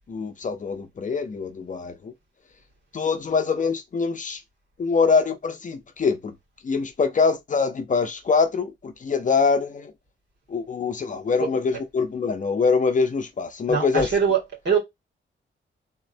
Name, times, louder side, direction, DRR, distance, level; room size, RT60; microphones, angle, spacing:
voice 1, 0.1-2.1 2.9-4.4 4.8-6.3 6.6-9.9 10.5-14.1, left 5 dB, 40° left, 0.6 m, -24 dB
voice 2, 13.7-14.4 14.6-14.8, right 7 dB, 60° right, 2.2 m, -21 dB
3.7 x 3.2 x 2.6 m
wide cardioid pair, 140°, 21 cm